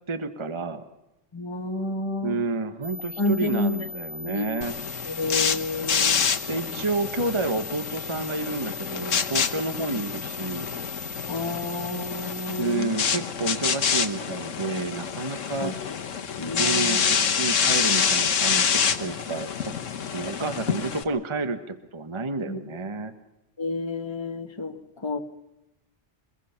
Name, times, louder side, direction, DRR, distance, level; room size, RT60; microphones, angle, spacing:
voice 1, 0.1-0.8 2.2-4.8 6.5-10.7 12.6-15.7 16.6-19.7 20.0-23.1, right 3 dB, 25° right, 9 dB, 1.2 m, -30 dB
voice 2, 1.3-2.4 3.2-3.7 4.2-4.5 5.1-6.2 11.3-12.9 15.6-15.7 16.4-17.0 22.5-22.6 23.6-24.7 25.0-25.2, left 3 dB, 20° left, 5 dB, 1.5 m, -29 dB
sound 1, 2.8-12.6, left 3 dB, 65° right, 2.1 m, -39 dB
sound 2, 4.6-21.0, left 6 dB, 80° left, 1.5 m, -27 dB
24.5 x 22.0 x 5.7 m, 0.95 s
omnidirectional pair, 1.3 m